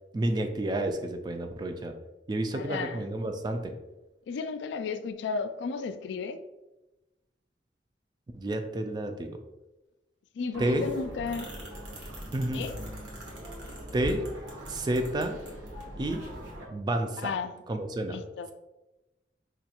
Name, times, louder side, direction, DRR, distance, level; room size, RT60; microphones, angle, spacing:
voice 1, 0.1-1.9 2.3-3.7 8.3-9.4 10.6-10.9 12.3-12.6 13.9-14.2 14.7-15.4 16.0-16.2 16.7-17.3 17.7-18.2, right 1 dB, 25° right, 0.3 m, -30 dB
voice 2, 2.5-3.1 4.3-6.4 10.4-11.5 12.5-12.8 17.2-17.6 18.1-18.5, left 5 dB, 75° left, 0.3 m, -34 dB
sound 1, 10.5-16.6, equal, 90° right, 1.1 m, -41 dB
5.0 x 2.3 x 2.8 m
head